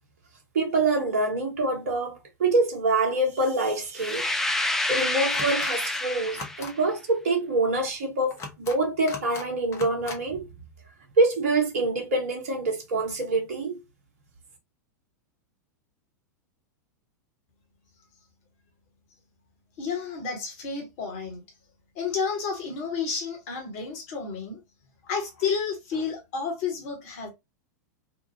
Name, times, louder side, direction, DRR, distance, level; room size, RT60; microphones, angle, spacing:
voice 1, 0.5-4.5 4.9-10.4 11.2-13.8, right 2 dB, 55° right, 0.8 m, -25 dB
sound 1, 4.0-6.7, left 1 dB, 5° left, 0.3 m, -28 dB
sound 2, 5.3-5.7 6.3-6.7 8.3-8.8 9.1-9.5 9.7-10.2, left 3 dB, 30° left, 0.8 m, -38 dB
voice 2, 19.8-21.4 21.9-24.6 25.0-27.3, left 5 dB, 45° left, 1.2 m, -31 dB
2.8 x 2.3 x 2.7 m
figure-of-eight pair, 95°, 10 cm